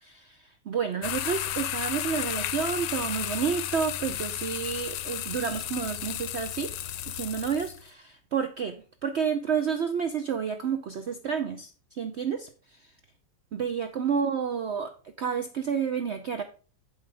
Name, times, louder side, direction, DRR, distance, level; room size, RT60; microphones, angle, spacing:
voice 1, 0.0-6.7 7.1-12.5 13.5-16.4, right 7 dB, 85° right, 7 dB, 0.5 m, -30 dB
sound 1, 1.0-7.8, left 12 dB, 80° left, 1.3 m, -33 dB
8.1 x 5.5 x 5.0 m, 0.38 s
omnidirectional pair, 2.0 m